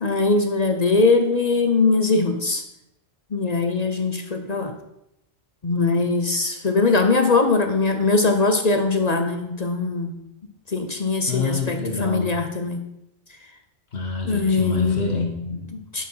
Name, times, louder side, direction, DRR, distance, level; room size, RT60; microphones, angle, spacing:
voice 1, 0.0-2.6 3.3-4.7 5.6-10.2 10.7-12.8 14.3-15.0 15.7-16.1, left 3 dB, 40° left, 5 dB, 0.9 m, -21 dB
voice 2, 11.3-12.3 13.9-15.7, left 3 dB, 65° left, 0 dB, 1.6 m, -27 dB
11.5 x 4.7 x 5.6 m, 0.82 s
omnidirectional pair, 1.1 m